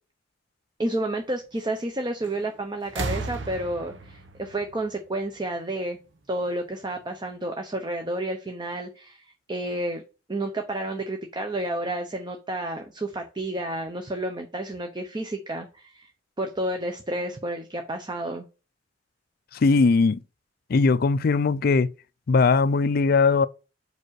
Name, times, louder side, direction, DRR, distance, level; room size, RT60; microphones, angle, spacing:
voice 1, 0.8-6.0 6.3-10.0 10.3-16.1 16.4-18.4, right 1 dB, 25° right, 0.7 m, -30 dB
sound 1, 2.2-2.5 2.8-5.6 6.7-6.8, right 3 dB, 70° right, 0.9 m, -35 dB
voice 2, 19.5-20.2 20.7-21.9 22.3-23.5, left 4 dB, 50° left, 0.4 m, -20 dB
5.2 x 4.7 x 6.3 m
head